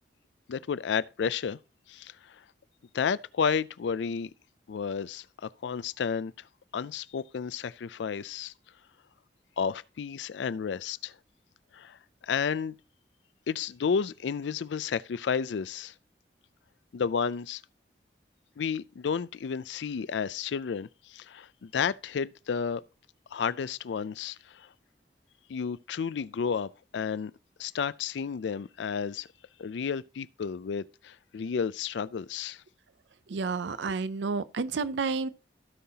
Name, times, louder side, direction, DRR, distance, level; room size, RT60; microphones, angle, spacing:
voice 1, 0.5-1.6 1.9-2.4 2.9-4.3 4.7-6.3 6.7-8.5 9.6-11.1 11.7-12.0 12.2-12.7 13.5-15.9 16.9-17.6 18.6-22.8 23.3-24.7 25.5-27.3 27.6-29.3 29.6-32.6, left 6 dB, 80° left, 0.4 m, -32 dB
voice 2, 33.3-35.3, right 4 dB, 80° right, 0.5 m, -30 dB
16.0 x 5.6 x 2.8 m
head